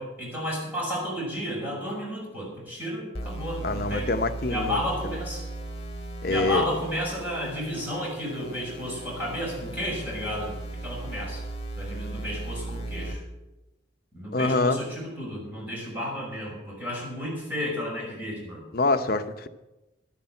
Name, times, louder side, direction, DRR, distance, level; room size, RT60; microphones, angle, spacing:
voice 1, 0.0-4.1 4.5-5.4 6.3-10.5 10.8-11.4 11.8-13.2 14.1-18.7, equal, 10° right, -4 dB, 5.4 m, -32 dB
sound 1, 3.1-13.1, right 2 dB, 30° left, 2.4 m, -37 dB
voice 2, 3.6-4.8 6.2-6.8 14.3-14.8 18.7-19.5, left 2 dB, 50° left, 8 dB, 0.8 m, -25 dB
11.5 x 10.0 x 7.8 m, 1.0 s
head